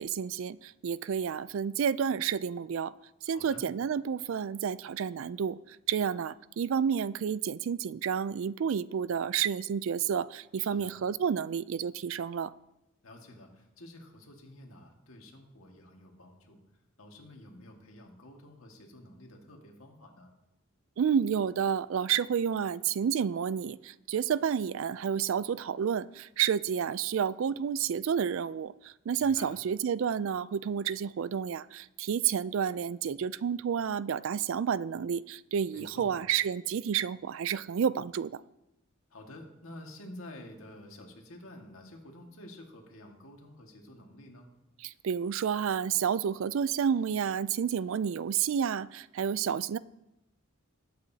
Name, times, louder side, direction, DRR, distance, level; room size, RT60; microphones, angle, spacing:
voice 1, 0.0-2.9 3.2-12.5 21.0-38.4 44.8-49.8, right 7 dB, 65° right, 18 dB, 0.3 m, -30 dB
voice 2, 3.3-3.7 10.6-11.0 13.0-16.6 17.0-20.3 29.2-29.5 35.7-36.2 39.1-44.5, left 1 dB, 75° left, 2 dB, 1.8 m, -50 dB
20.5 x 8.0 x 2.8 m, 0.92 s
head